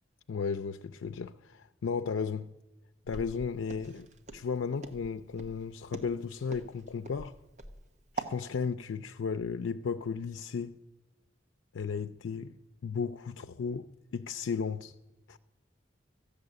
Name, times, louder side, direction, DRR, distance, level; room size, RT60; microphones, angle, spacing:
voice 1, 0.3-2.5 3.1-4.1 4.3-7.3 8.1-10.8 11.7-12.5 12.8-13.9 14.1-14.9 15.3-15.4, left 5 dB, 85° left, 0.4 m, -34 dB
Walk footsteps, 3.1-8.4, right 3 dB, 40° right, 1.1 m, -43 dB
14.5 x 7.0 x 9.6 m
head